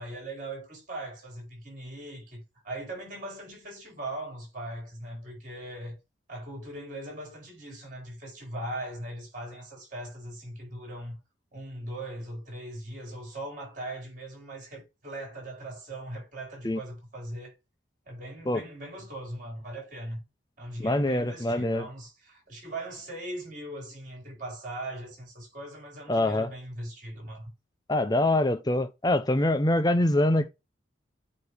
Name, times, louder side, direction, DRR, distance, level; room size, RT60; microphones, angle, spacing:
voice 1, 0.0-6.0 6.3-11.2 11.5-17.5 18.0-20.2 20.6-27.5, right 1 dB, 45° right, 4.8 m, -39 dB
voice 2, 20.8-21.8 26.1-26.5 27.9-30.5, left 1 dB, 20° left, 0.6 m, -24 dB
8.2 x 3.0 x 4.9 m
head